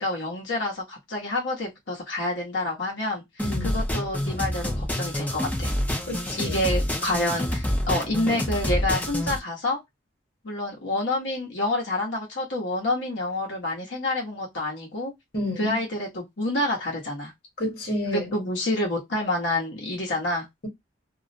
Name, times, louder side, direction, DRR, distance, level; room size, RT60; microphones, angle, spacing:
voice 1, 0.0-5.7 6.4-9.8 10.4-15.1 15.6-17.3 18.1-20.5, left 1 dB, 80° left, 0.9 m, -28 dB
voice 2, 3.4-3.8 6.1-6.6 15.3-15.7 17.6-18.2, left 1 dB, 50° left, 1.2 m, -30 dB
sound 1, 3.4-9.4, left 1 dB, 10° left, 0.4 m, -27 dB
2.4 x 2.0 x 2.5 m
head